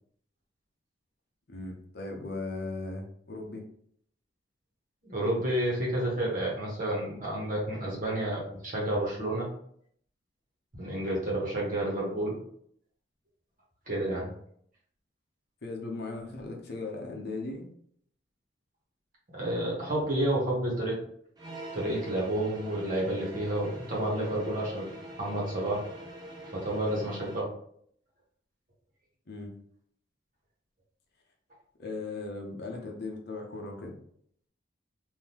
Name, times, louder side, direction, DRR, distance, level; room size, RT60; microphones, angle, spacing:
voice 1, 1.5-3.7 15.6-17.7 29.3-29.5 31.8-34.0, left 3 dB, 55° left, 1 dB, 0.7 m, -38 dB
voice 2, 5.0-9.5 10.8-12.3 13.9-14.3 19.3-21.0 21.7-24.9 25.2-25.8 26.5-27.5, right 1 dB, 45° right, -4 dB, 1.3 m, -30 dB
sound 1, 21.4-27.5, right 1 dB, 20° right, 0.6 m, -44 dB
3.6 x 2.7 x 2.9 m, 0.65 s
head